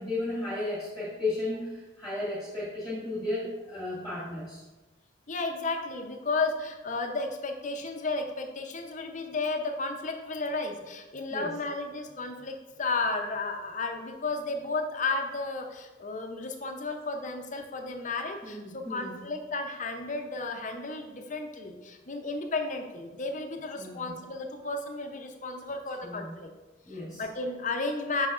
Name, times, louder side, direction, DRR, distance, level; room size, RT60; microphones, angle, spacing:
voice 1, 0.0-4.6 11.3-11.5 18.4-19.2 23.8-24.1 26.0-26.3 26.9-27.2, left 2 dB, ahead, -10 dB, 2.1 m, -34 dB
voice 2, 5.3-26.5 26.9-28.3, left 3 dB, 40° left, 4 dB, 0.6 m, -33 dB
7.9 x 5.6 x 2.5 m, 1.1 s
head